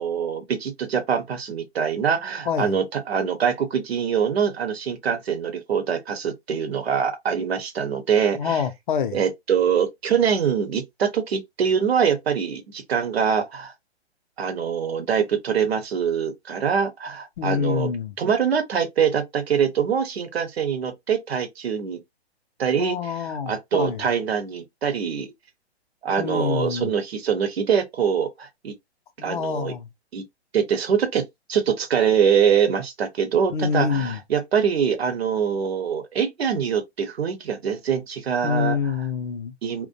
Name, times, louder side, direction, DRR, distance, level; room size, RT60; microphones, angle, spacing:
voice 1, 0.0-8.6 9.1-13.7 14.4-17.9 18.2-22.0 22.6-25.3 26.0-28.7 29.2-29.7 30.1-30.2 30.5-38.8 39.6-39.9, right 7 dB, 65° right, 0.9 m, -24 dB
voice 2, 8.3-9.2 17.4-18.2 22.8-24.1 26.2-26.9 29.2-29.9 33.5-34.2 38.4-39.5, left 6 dB, 45° left, 0.5 m, -26 dB
2.4 x 2.1 x 2.7 m
figure-of-eight pair, 125°, 34 cm